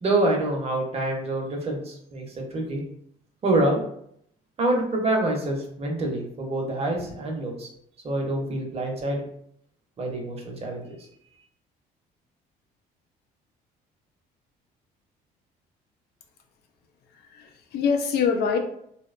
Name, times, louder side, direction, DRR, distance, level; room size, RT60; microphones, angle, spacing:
voice 1, 0.0-2.8 3.4-3.8 4.6-7.7 8.0-9.2 10.0-11.1, right 2 dB, 35° right, 1 dB, 0.7 m, -26 dB
voice 2, 17.1-18.6, left 6 dB, 70° left, 4 dB, 0.5 m, -25 dB
2.8 x 2.1 x 2.4 m, 0.70 s
cardioid pair, 110°, 17 cm